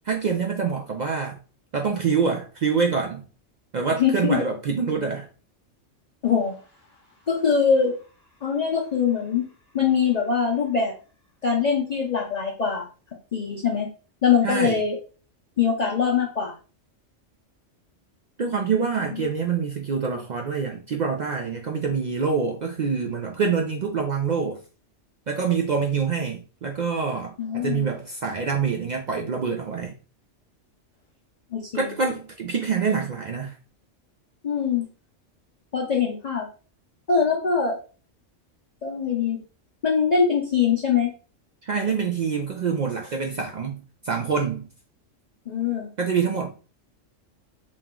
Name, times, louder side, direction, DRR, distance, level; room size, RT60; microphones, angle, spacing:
voice 1, 0.1-1.4 1.7-3.2 3.7-5.3 14.4-14.8 18.4-24.6 25.3-29.9 31.7-33.6 41.6-44.7 46.0-46.5, right 5 dB, 75° right, 0.4 m, -26 dB
voice 2, 4.0-4.4 6.2-6.6 7.3-7.9 8.4-9.5 9.7-10.9 11.4-12.9 13.3-13.9 14.2-15.0 15.6-16.5 19.1-19.2 27.4-27.9 31.5-31.9 34.4-34.9 35.7-36.5 37.1-37.8 38.8-39.4 39.8-41.1 45.5-45.9, left 6 dB, 45° left, 0.5 m, -22 dB
3.0 x 2.9 x 3.6 m
omnidirectional pair, 1.3 m